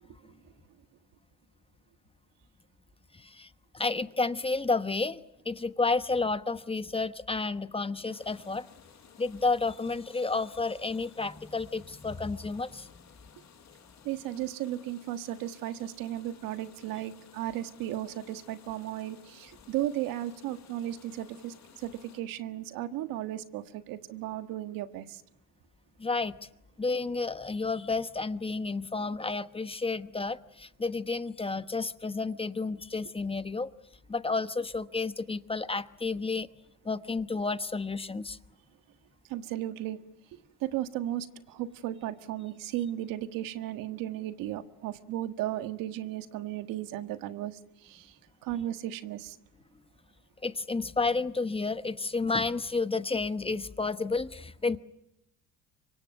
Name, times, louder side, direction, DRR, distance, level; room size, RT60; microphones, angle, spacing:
voice 1, 3.1-3.5 3.7-8.7 9.2-12.9 26.0-26.4 26.8-33.7 34.1-36.5 36.8-38.4 50.4-54.8, left 3 dB, 15° left, 1.1 m, -31 dB
sound 1, 8.1-22.2, left 7 dB, 50° left, 6.5 m, -56 dB
voice 2, 14.0-25.2 39.3-40.0 40.3-49.4, right 13 dB, 75° right, 1.6 m, -35 dB
25.5 x 24.0 x 9.2 m
supercardioid pair, 95°, 34 cm